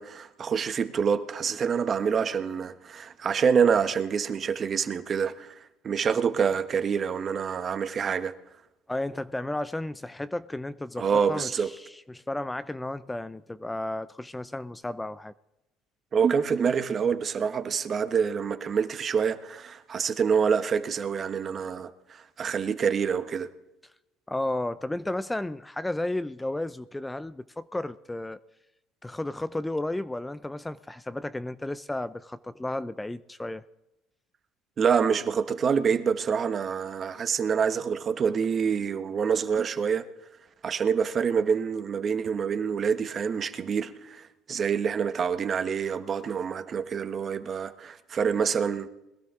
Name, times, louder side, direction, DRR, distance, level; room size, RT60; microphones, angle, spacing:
voice 1, 0.0-5.5 5.8-8.3 11.0-11.7 16.1-23.5 34.8-40.0 40.6-48.9, right 6 dB, 40° right, 1.1 m, -26 dB
voice 2, 8.9-15.3 24.3-28.4 29.0-33.6, left 1 dB, 10° left, 0.5 m, -33 dB
21.0 x 13.0 x 3.7 m
supercardioid pair, 90°, 0 cm